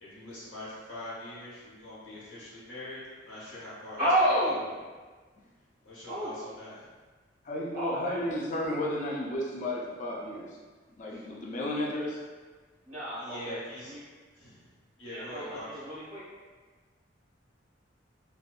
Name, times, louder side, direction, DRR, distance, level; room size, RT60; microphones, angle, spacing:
voice 1, 0.0-4.1 4.4-4.8 5.8-6.9 11.1-11.2 13.1-13.9 14.3-15.8, left 1 dB, 85° left, -9 dB, 1.0 m, -43 dB
voice 2, 4.0-4.7 6.1-6.3 7.7-8.3 12.9-13.6 13.9-14.0 15.1-16.2, equal, 10° right, -11 dB, 0.7 m, -30 dB
voice 3, 7.4-10.5 11.0-12.2, left 1 dB, 40° left, -4 dB, 0.4 m, -33 dB
2.5 x 2.1 x 2.3 m, 1.4 s
head